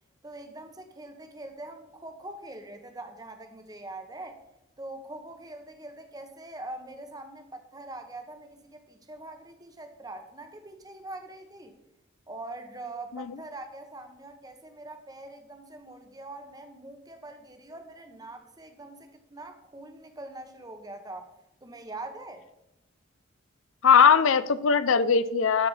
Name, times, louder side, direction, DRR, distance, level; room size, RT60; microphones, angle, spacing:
voice 1, 0.2-4.4 4.8-11.7 12.3-21.3 21.6-22.4, right 2 dB, 20° right, 7 dB, 1.0 m, -43 dB
voice 2, 23.8-25.7, left 6 dB, 75° left, 14 dB, 0.5 m, -20 dB
13.0 x 4.7 x 5.5 m, 0.90 s
head